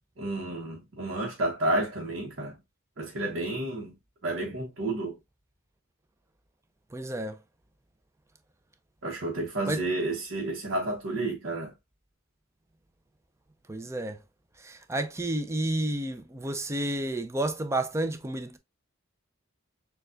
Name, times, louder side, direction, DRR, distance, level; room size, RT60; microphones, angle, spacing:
voice 1, 0.2-2.5 3.0-3.9 4.2-5.2 9.0-11.7, right 2 dB, 65° right, 0.9 m, -31 dB
voice 2, 6.9-7.4 9.7-9.8 13.7-14.2 14.6-18.6, right 1 dB, 15° right, 0.4 m, -31 dB
6.6 x 2.3 x 2.4 m
head